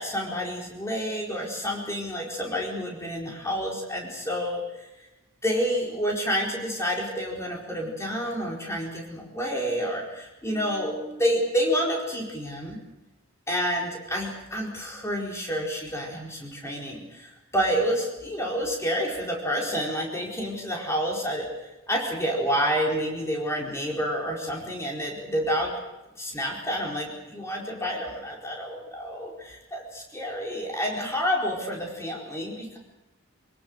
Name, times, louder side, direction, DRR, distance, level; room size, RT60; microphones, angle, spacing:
voice 1, 0.0-4.9 5.4-12.8 13.5-21.5 21.9-25.7 26.2-32.8, equal, 15° left, -2 dB, 4.6 m, -29 dB
26.0 x 18.0 x 6.6 m, 1.0 s
head